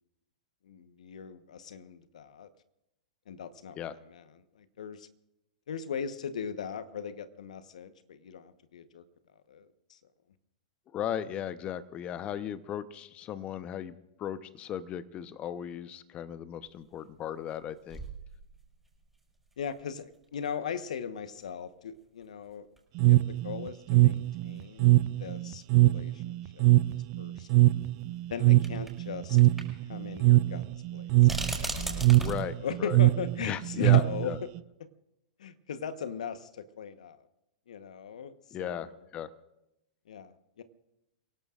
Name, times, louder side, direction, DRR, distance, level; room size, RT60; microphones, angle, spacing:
voice 1, 0.6-2.5 3.3-5.1 5.7-9.0 9.5-10.0 19.6-22.7 23.1-26.6 27.2-27.5 28.3-29.4 29.9-32.0 32.6-34.5 35.4-37.2 37.7-39.0 40.1-40.6, left 7 dB, 70° left, 11 dB, 1.2 m, -39 dB
voice 2, 10.9-18.0 32.2-33.0 33.4-34.4 38.5-39.3, left 9 dB, 30° left, 14 dB, 0.9 m, -37 dB
sound 1, 16.7-16.8 17.5-17.6 17.9-18.9 19.5-19.6 21.4-21.5 22.8-22.9 23.0-23.1 24.2-24.3 24.6-24.7 26.1-26.2 27.7-27.8 28.6-29.0 29.4-29.6 29.9-30.0 31.2-32.4, right 2 dB, 5° right, 5.9 m, -36 dB
sound 2, 23.0-34.6, right 17 dB, 45° right, 0.6 m, -23 dB
29.0 x 17.5 x 2.5 m, 0.90 s
hypercardioid pair, 110°, 4 cm